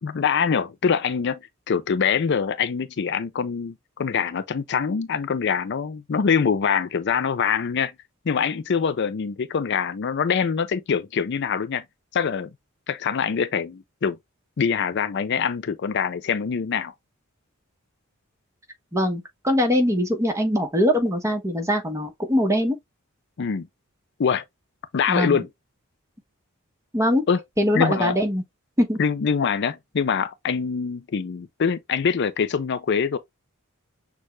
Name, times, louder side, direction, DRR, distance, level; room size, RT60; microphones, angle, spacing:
voice 1, 0.0-1.4 1.7-7.9 8.3-11.8 12.1-12.5 12.9-14.2 14.6-16.9 23.4-23.7 24.2-24.4 24.9-25.5 27.3-27.4 27.7-28.2 29.0-33.2, left 6 dB, 55° left, 0.4 m, -24 dB
voice 2, 18.9-22.8 25.1-25.4 26.9-27.2 27.6-28.4 28.8-29.0, equal, 15° right, 1.1 m, -22 dB
6.4 x 2.3 x 3.1 m
head